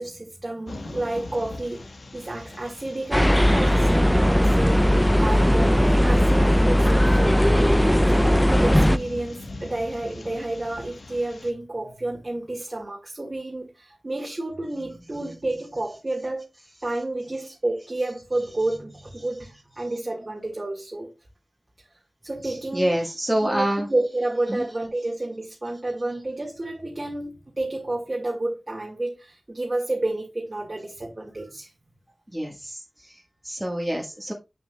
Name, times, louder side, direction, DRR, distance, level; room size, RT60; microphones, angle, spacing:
voice 1, 0.0-4.9 5.1-7.4 8.1-16.5 16.8-21.1 22.2-22.9 23.4-31.7, right 2 dB, 45° right, 2.0 m, -30 dB
sound 1, 0.6-11.5, left 2 dB, 80° left, 1.3 m, -40 dB
sound 2, 3.1-9.0, equal, 5° left, 0.4 m, -18 dB
voice 2, 22.4-23.9 24.5-24.6 32.3-34.3, right 1 dB, 15° right, 1.6 m, -27 dB
7.5 x 7.4 x 2.3 m
wide cardioid pair, 55°, 0 cm